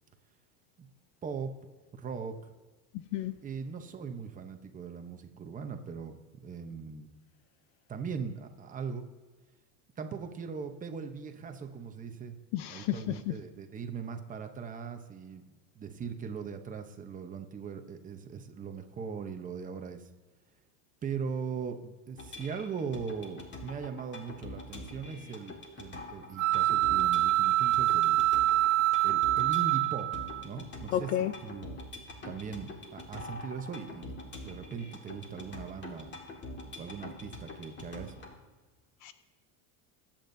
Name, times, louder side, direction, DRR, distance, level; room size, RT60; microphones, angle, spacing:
voice 1, 1.2-2.5 3.4-7.1 7.9-9.1 10.0-12.4 12.7-15.5 15.7-20.1 21.0-28.2 29.0-31.7 32.2-34.1 34.4-36.1 36.8-38.2, right 6 dB, 20° right, 6 dB, 0.9 m, -40 dB
voice 2, 12.5-13.1 30.9-31.3 39.0-39.1, left 12 dB, 65° left, 11 dB, 0.7 m, -31 dB
sound 1, 22.2-38.3, left 2 dB, 25° left, 1.8 m, -45 dB
sound 2, 26.4-30.4, right 15 dB, 45° right, 0.5 m, -26 dB
22.0 x 8.7 x 2.7 m, 1.3 s
cardioid pair, 155°, 42 cm